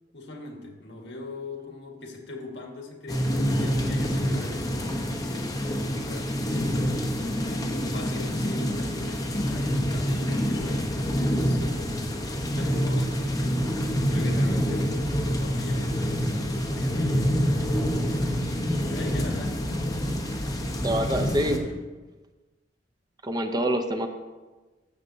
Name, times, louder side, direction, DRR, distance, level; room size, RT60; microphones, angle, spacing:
voice 1, 0.1-6.7 7.4-12.1 12.4-13.7 14.0-17.9 18.3-21.9, left 2 dB, 70° left, 1 dB, 1.6 m, -41 dB
sound 1, 3.1-21.6, equal, 20° left, 0.9 m, -27 dB
voice 2, 20.8-21.6 23.2-24.1, right 1 dB, 25° right, 5 dB, 0.6 m, -25 dB
15.0 x 6.7 x 2.7 m, 1.2 s
head